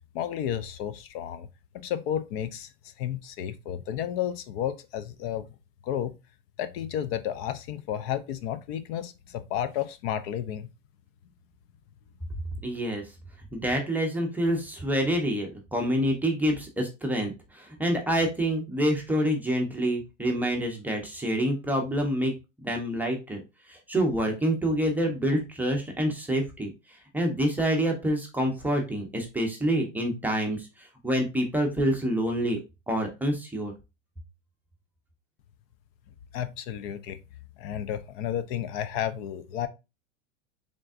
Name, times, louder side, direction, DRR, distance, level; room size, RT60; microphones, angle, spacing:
voice 1, 0.1-1.5 1.7-5.5 5.8-6.1 6.6-10.7 36.3-37.2 37.6-39.7, left 10 dB, 50° left, 0.5 m, -32 dB
voice 2, 12.6-13.0 13.5-22.3 22.6-23.4 23.7-26.7 27.1-32.6 32.9-33.7, equal, 5° right, 0.7 m, -27 dB
3.8 x 3.6 x 2.4 m
supercardioid pair, 130°, 39 cm